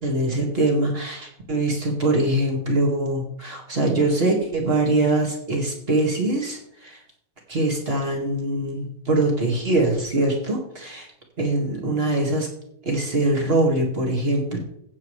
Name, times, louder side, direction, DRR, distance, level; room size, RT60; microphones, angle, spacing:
voice 1, 0.0-7.0 7.5-11.1 11.4-12.5 12.8-14.6, right 2 dB, 25° right, 0 dB, 1.4 m, -23 dB
16.5 x 8.5 x 3.3 m, 0.74 s
omnidirectional pair, 3.9 m